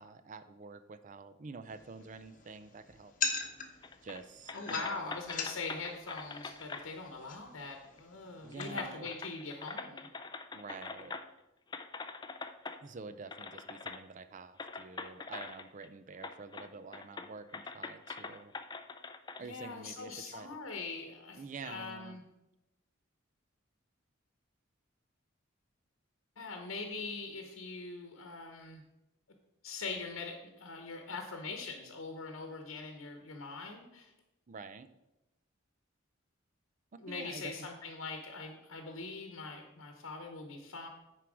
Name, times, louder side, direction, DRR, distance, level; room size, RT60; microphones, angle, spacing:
voice 1, 0.0-3.1 4.0-5.0 8.4-9.1 10.5-11.2 12.8-18.5 19.4-20.5 21.3-22.2 34.5-34.9 37.1-37.5, right 4 dB, 40° right, 12 dB, 0.4 m, -48 dB
sound 1, 1.7-9.0, left 5 dB, 40° left, 1.0 m, -42 dB
sound 2, 3.8-4.2 4.5-6.9 8.0-8.1 8.5-11.4 11.7-12.8 13.3-14.0 14.6-15.9 16.2-16.7 16.9-19.4, left 4 dB, 20° left, 0.4 m, -44 dB
voice 2, 4.5-10.1 19.4-22.2 26.4-28.8 29.6-34.1 37.0-40.9, left 3 dB, 75° left, 4 dB, 0.9 m, -42 dB
9.7 x 4.6 x 4.9 m, 0.96 s
head